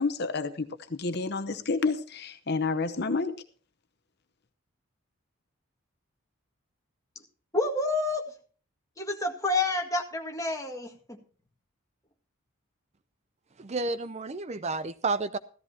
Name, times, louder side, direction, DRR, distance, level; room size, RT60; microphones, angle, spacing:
voice 1, 0.0-3.4, left 4 dB, 50° left, 0.8 m, -29 dB
voice 2, 7.5-8.3 9.0-11.2, left 2 dB, 15° left, 1.9 m, -29 dB
voice 3, 13.6-15.4, right 3 dB, 30° right, 0.5 m, -31 dB
15.5 x 14.0 x 2.8 m
head